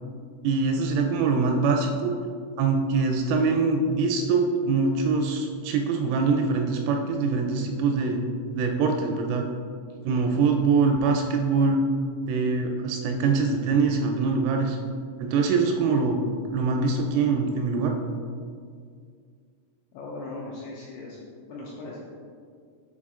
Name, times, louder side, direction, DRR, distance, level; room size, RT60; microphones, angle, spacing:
voice 1, 0.4-2.1 2.6-8.2 8.6-9.5 10.0-11.8 12.3-14.8 15.2-16.2 16.5-17.9, right 4 dB, 85° right, 3 dB, 2.9 m, -23 dB
voice 2, 19.9-21.2 21.5-22.0, left 2 dB, 80° left, -5 dB, 2.5 m, -38 dB
6.9 x 4.3 x 3.6 m, 2.1 s
omnidirectional pair, 5.8 m